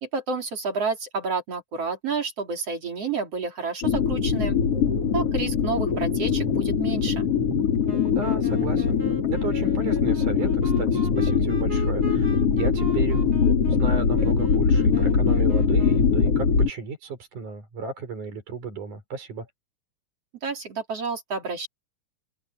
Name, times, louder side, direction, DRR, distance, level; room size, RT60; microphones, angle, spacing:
voice 1, 0.0-4.6 5.1-7.3 20.4-21.7, right 4 dB, 50° right, 4.0 m, -30 dB
sound 1, 3.8-16.7, left 6 dB, 45° left, 4.6 m, -22 dB
Wind instrument woodwind instrument, 7.8-16.3, right 2 dB, 15° right, 7.4 m, -41 dB
voice 2, 8.2-9.0 9.3-19.5, right 5 dB, 65° right, 6.7 m, -34 dB
open air
omnidirectional pair, 3.8 m